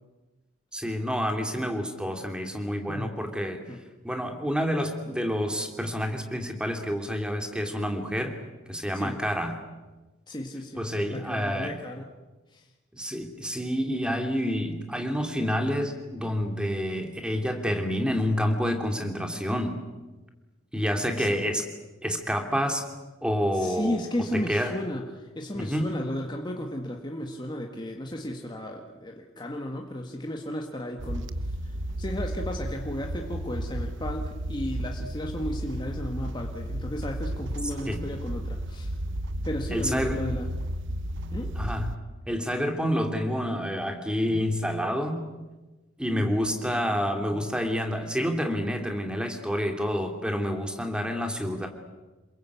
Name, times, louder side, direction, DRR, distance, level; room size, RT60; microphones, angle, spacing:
voice 1, 0.7-3.6 4.0-8.3 8.7-9.6 10.8-11.8 12.9-19.8 20.7-21.6 22.0-22.8 23.2-24.0 24.3-24.7 25.5-25.9 37.9-38.1 39.7-40.2 41.6-41.9 42.3-45.2 46.0-51.7, equal, 5° right, 4 dB, 2.8 m, -28 dB
voice 2, 10.3-12.1 12.5-12.7 21.1-21.3 23.5-39.0 39.4-40.5 41.3-41.5 46.1-46.3 46.9-47.0 47.3-47.4, left 1 dB, 20° left, 1 dB, 1.7 m, -34 dB
sound 1, 31.0-42.0, right 1 dB, 60° right, 1.0 m, -33 dB
28.0 x 22.0 x 8.4 m, 1.2 s
head